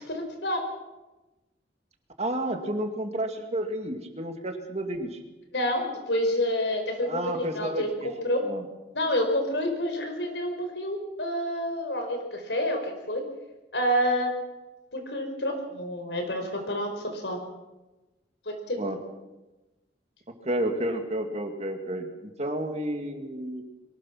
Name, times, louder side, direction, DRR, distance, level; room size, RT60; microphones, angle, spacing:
voice 1, 0.1-0.6 5.5-7.9 8.2-8.4 8.9-13.2 13.7-14.3 14.9-17.4 18.4-18.8, equal, 90° left, 4 dB, 4.8 m, -28 dB
voice 2, 2.2-5.2 7.0-8.1 8.4-8.7 18.8-19.0 20.4-23.6, right 1 dB, 40° right, 5 dB, 2.4 m, -31 dB
23.0 x 19.0 x 6.0 m, 1.1 s
head